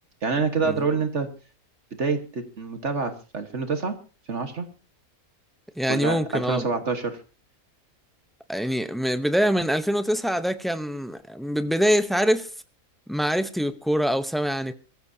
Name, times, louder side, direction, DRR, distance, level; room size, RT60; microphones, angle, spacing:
voice 1, 0.2-1.3 2.0-4.0 4.3-4.7 5.9-7.2, right 4 dB, 50° right, 1.8 m, -26 dB
voice 2, 5.8-6.7 8.5-12.5 13.1-14.7, equal, ahead, 0.3 m, -24 dB
23.5 x 15.0 x 2.8 m
omnidirectional pair, 1.6 m